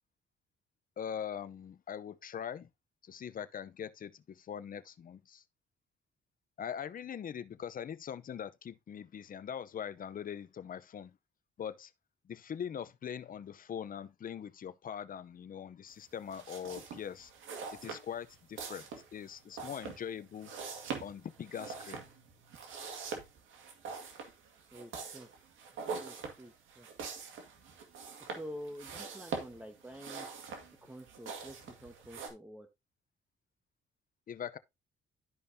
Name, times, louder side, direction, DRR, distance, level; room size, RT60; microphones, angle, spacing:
voice 1, 1.0-2.7 3.0-5.4 6.6-11.2 11.6-11.9 12.2-17.3 17.8-20.5 21.0-22.0 34.3-34.6, left 8 dB, 45° left, 0.7 m, -42 dB
sound 1, 16.2-32.3, right 5 dB, 80° right, 2.1 m, -44 dB
voice 2, 24.7-25.3 26.0-26.9 28.2-30.3 30.8-32.7, equal, 5° right, 1.3 m, -48 dB
12.5 x 5.2 x 2.8 m
cardioid pair, 90°, 20 cm